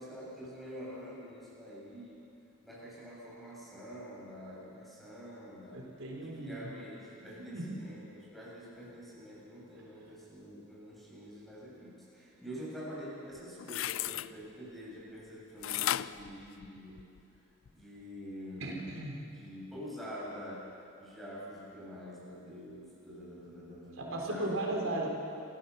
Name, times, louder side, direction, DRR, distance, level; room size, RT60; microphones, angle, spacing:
voice 1, 0.0-2.1 2.6-5.9 6.2-17.0 17.7-18.9 19.3-25.0, equal, ahead, -7 dB, 7.1 m, -46 dB
voice 2, 5.7-6.7 7.2-7.6 18.6-19.2 24.0-25.1, right 1 dB, 90° right, -1 dB, 3.8 m, -36 dB
sound 1, 13.3-14.3 15.6-17.2 17.7-17.8, left 12 dB, 70° left, 0.4 m, -35 dB
27.0 x 17.0 x 7.0 m, 2.7 s
head